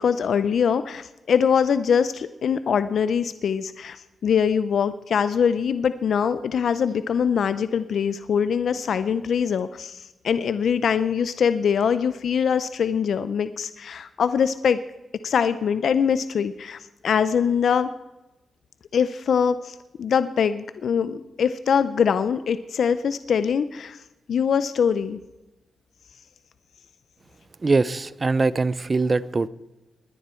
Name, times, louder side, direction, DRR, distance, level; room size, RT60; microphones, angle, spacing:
voice 1, 0.0-14.8 15.2-17.9 18.9-24.0 24.3-25.2, left 7 dB, 75° left, 13 dB, 0.5 m, -23 dB
voice 2, 27.6-29.5, right 3 dB, 35° right, 18 dB, 0.6 m, -22 dB
20.0 x 10.5 x 4.4 m, 1.0 s
cardioid pair, 70°, 0 cm